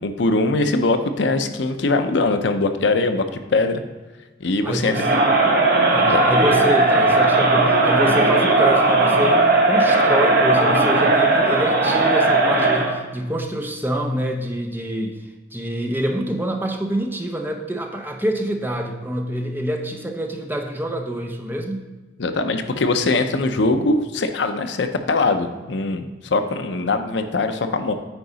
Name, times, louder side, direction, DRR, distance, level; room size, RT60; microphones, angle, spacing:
voice 1, 0.0-3.2 3.5-3.8 4.4-4.9 6.1-6.2 22.2-27.9, left 3 dB, 65° left, 8 dB, 0.6 m, -21 dB
voice 2, 4.6-5.1 5.9-15.2 15.5-21.9, equal, 10° right, 3 dB, 0.6 m, -26 dB
Crowd, 4.9-13.0, right 2 dB, 55° right, 1.2 m, -17 dB
9.0 x 4.7 x 4.0 m, 1.2 s
head